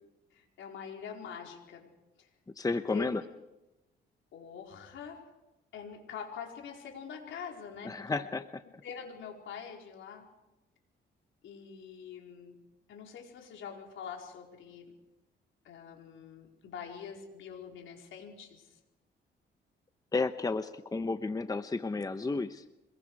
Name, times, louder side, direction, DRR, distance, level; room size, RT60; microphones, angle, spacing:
voice 1, 0.3-1.9 2.2-2.3 2.9-3.3 4.3-5.2 5.7-8.4 8.8-10.3 11.4-12.6 12.9-14.9 15.6-18.8, left 7 dB, 75° left, 1 dB, 4.5 m, -45 dB
voice 2, 2.6-3.2 7.8-8.4 20.1-22.6, left 3 dB, 20° left, 10 dB, 1.0 m, -32 dB
26.0 x 21.5 x 4.8 m, 0.97 s
cardioid pair, 90°, 20 cm